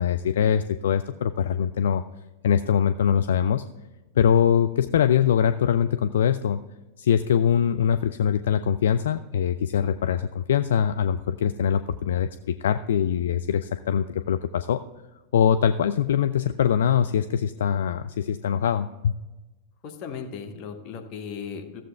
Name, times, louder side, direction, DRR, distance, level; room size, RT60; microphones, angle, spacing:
voice 1, 0.0-2.0 2.4-3.6 4.2-6.6 7.0-14.8 15.3-19.1, left 8 dB, 60° left, 10 dB, 0.3 m, -23 dB
voice 2, 19.8-21.8, left 6 dB, 40° left, 5 dB, 1.3 m, -36 dB
14.5 x 7.4 x 3.4 m, 1.1 s
figure-of-eight pair, 90°, 0 cm